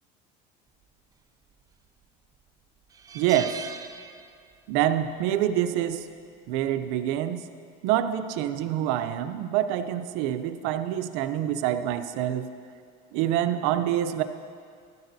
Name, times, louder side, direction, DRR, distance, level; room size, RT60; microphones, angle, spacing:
sound 1, 1.5-2.0 2.4-2.5 2.9-4.7 5.0-5.2 6.5-6.8, right 6 dB, 20° right, 0.4 m, -40 dB
voice 1, 3.1-3.6 4.7-6.1 6.5-7.5 7.8-12.5 13.1-14.2, right 11 dB, 75° right, 10 dB, 0.6 m, -26 dB
14.5 x 12.0 x 2.7 m, 2.2 s
cardioid pair, 130°, 20 cm